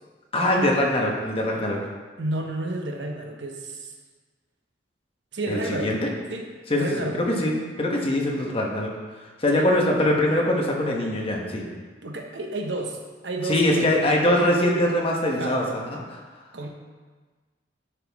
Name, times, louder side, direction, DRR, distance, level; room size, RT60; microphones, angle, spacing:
voice 1, 0.3-1.8 5.5-6.0 6.7-8.9 9.4-11.6 13.4-16.2, left 1 dB, 30° left, -1 dB, 1.3 m, -23 dB
voice 2, 2.2-3.9 5.3-6.0 6.3-6.5 6.8-7.2 9.5-9.7 12.0-14.0 15.2-15.6 16.5-16.7, right 2 dB, 70° right, 2 dB, 1.0 m, -31 dB
10.5 x 5.7 x 3.6 m, 1.4 s
head